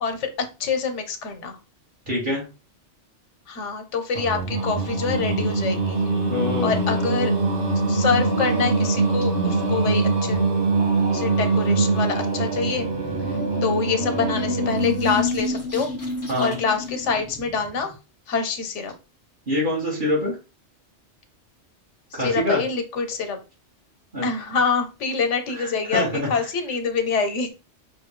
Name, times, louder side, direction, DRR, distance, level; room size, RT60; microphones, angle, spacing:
voice 1, 0.0-1.6 3.5-6.0 6.6-7.3 7.9-10.4 11.1-12.9 13.3-15.9 16.4-18.0 18.3-18.9 22.1-23.4 24.2-27.5, left 5 dB, 80° left, 7 dB, 1.1 m, -26 dB
voice 2, 2.1-2.4 6.3-6.7 16.3-16.6 19.5-20.4 22.1-22.6 24.1-24.3 25.6-26.3, left 1 dB, 45° right, -4 dB, 2.1 m, -25 dB
Singing, 4.1-15.3, right 3 dB, 70° right, 1.6 m, -23 dB
sound 1, 12.6-18.0, left 3 dB, 15° left, 0.8 m, -30 dB
5.6 x 2.7 x 3.1 m, 0.30 s
omnidirectional pair, 1.2 m